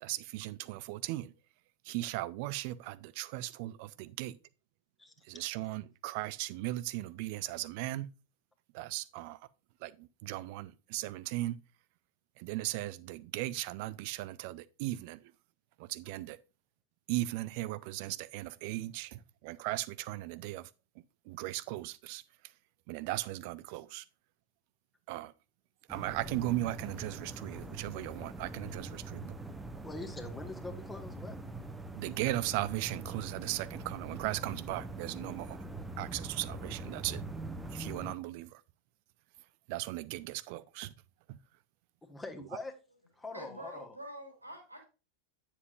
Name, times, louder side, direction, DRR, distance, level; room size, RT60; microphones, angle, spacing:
voice 1, 0.0-1.3 1.9-4.4 5.3-8.1 8.7-9.4 9.8-11.6 12.4-15.2 15.8-16.4 17.1-20.7 21.3-22.2 22.9-24.0 25.1-25.3 25.9-29.3 32.0-35.6 36.0-37.2 37.7-38.5 39.7-40.9, right 16 dB, 45° right, 0.5 m, -37 dB
voice 2, 5.0-5.5 29.8-31.4 42.0-42.7 43.2-43.9, left 3 dB, 10° left, 1.3 m, -44 dB
sound 1, 25.9-38.1, right 2 dB, 10° right, 0.9 m, -43 dB
voice 3, 43.3-44.8, right 1 dB, 85° right, 2.6 m, -46 dB
9.7 x 7.2 x 2.5 m
figure-of-eight pair, 90°, 0 cm